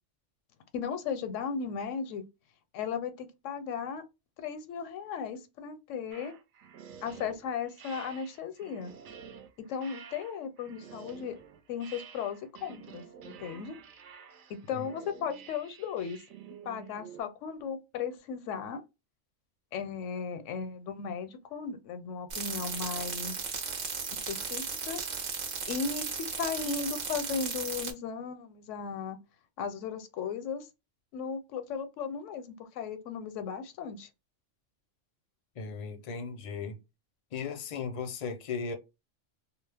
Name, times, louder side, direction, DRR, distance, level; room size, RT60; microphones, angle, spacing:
voice 1, 0.7-2.2 2.7-4.0 4.4-6.3 7.0-8.9 9.7-11.4 11.7-13.8 14.5-16.2 16.7-18.8 19.7-23.4 24.3-25.0 25.7-26.1 26.4-29.2 29.6-30.7 31.1-34.1, left 6 dB, 80° left, 0.9 m, -36 dB
sound 1, 6.1-17.2, right 7 dB, 75° right, 0.9 m, -50 dB
sound 2, 22.3-27.9, right 5 dB, 50° right, 0.6 m, -36 dB
voice 2, 35.6-36.8 37.3-38.7, left 5 dB, 50° left, 0.5 m, -36 dB
2.3 x 2.0 x 3.3 m
omnidirectional pair, 1.3 m